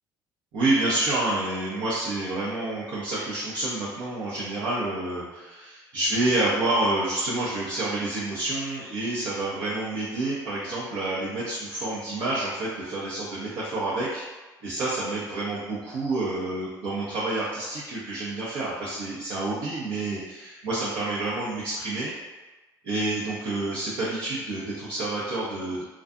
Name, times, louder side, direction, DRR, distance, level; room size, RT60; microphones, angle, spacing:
voice 1, 0.5-14.2 14.6-22.1 22.8-25.8, right 2 dB, 65° right, -9 dB, 0.7 m, -28 dB
2.4 x 2.4 x 2.5 m, 1.1 s
hypercardioid pair, 65°, 10 cm